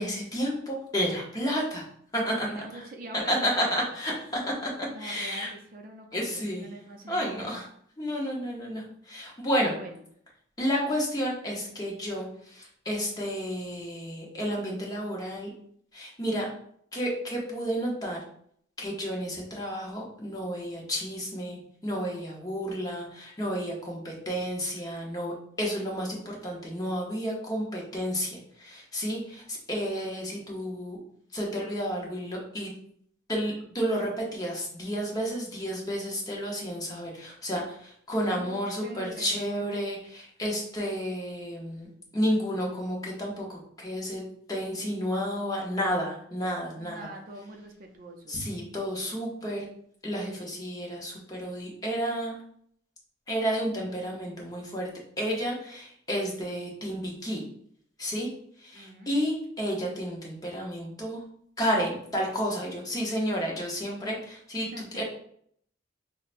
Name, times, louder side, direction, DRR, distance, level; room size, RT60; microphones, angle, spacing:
voice 1, 0.0-1.8 2.1-2.5 3.3-4.7 5.0-5.5 6.1-6.7 7.1-7.6 8.0-9.7 10.6-15.5 15.9-16.5 16.9-18.2 18.8-31.0 31.3-32.7 33.3-41.9 42.1-44.2 44.5-47.1 48.3-49.7 50.0-52.3 53.3-54.9 55.2-57.4 58.0-58.3 58.6-61.2 61.6-64.7 64.9-65.0, equal, 20° left, -2 dB, 0.8 m, -31 dB
voice 2, 2.5-3.8 4.9-7.6 9.6-10.0 38.3-39.6 46.8-48.4 58.7-59.1 64.7-65.0, right 1 dB, 45° right, 3 dB, 0.4 m, -43 dB
5.6 x 2.1 x 2.5 m, 0.65 s
head